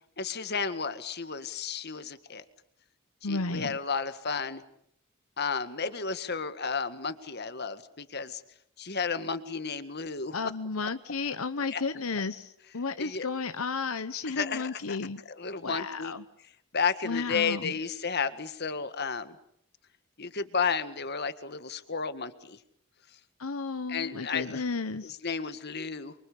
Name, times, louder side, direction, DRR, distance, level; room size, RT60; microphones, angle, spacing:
voice 1, 0.2-2.4 3.2-4.6 5.4-8.4 8.8-10.5 11.7-11.8 13.0-13.3 14.4-15.0 15.3-16.1 16.7-19.4 20.2-22.6 23.9-24.6 25.0-26.1, left 5 dB, 50° left, 11 dB, 1.8 m, -32 dB
voice 2, 3.2-3.8 10.3-15.2 15.6-16.2 17.0-17.7 23.4-25.1, left 4 dB, 80° left, 10 dB, 1.1 m, -33 dB
29.0 x 24.0 x 8.5 m, 0.73 s
head